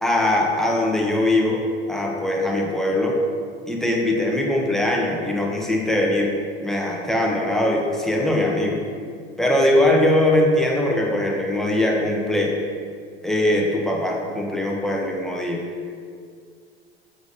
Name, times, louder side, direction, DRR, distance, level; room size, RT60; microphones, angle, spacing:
voice 1, 0.0-1.6 1.9-3.2 3.7-6.3 6.6-8.8 9.4-12.6 13.2-15.6, left 1 dB, ahead, -2 dB, 1.3 m, -21 dB
7.1 x 4.9 x 4.2 m, 2.1 s
figure-of-eight pair, 75°, 30 cm